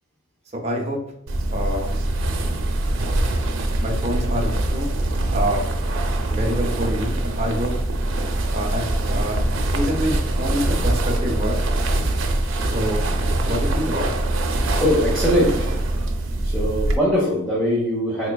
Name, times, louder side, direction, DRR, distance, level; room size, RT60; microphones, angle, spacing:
voice 1, 0.6-1.0 1.5-2.0 3.8-4.9 5.3-5.7 6.3-7.7 8.5-11.6 12.7-13.1 13.4-14.1, equal, 35° right, 1 dB, 0.7 m, -26 dB
sound 1, 1.3-17.0, right 1 dB, 85° right, 0.5 m, -23 dB
voice 2, 14.8-16.1 16.4-18.3, equal, 5° left, -7 dB, 0.7 m, -22 dB
3.6 x 3.3 x 2.2 m, 0.75 s
head